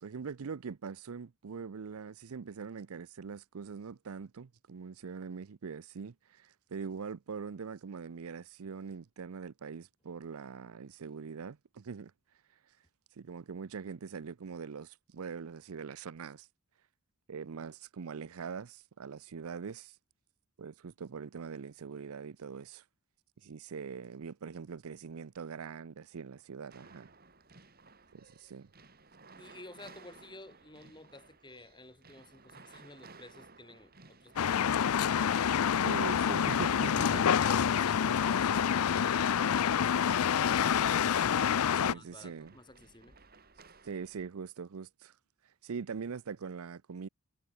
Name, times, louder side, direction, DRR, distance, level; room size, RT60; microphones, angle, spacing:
voice 1, 0.0-12.1 13.2-16.5 17.3-20.0 20.6-22.8 23.4-27.1 28.1-28.7 35.8-37.4 41.7-42.5 43.8-45.1 45.4-47.1, right 5 dB, 75° right, 0.5 m, -42 dB
sound 1, 26.7-44.3, right 4 dB, 45° right, 4.9 m, -58 dB
voice 2, 29.4-35.7 41.9-43.2, left 2 dB, 20° left, 4.5 m, -52 dB
sound 2, 34.4-41.9, left 8 dB, 80° left, 0.5 m, -27 dB
head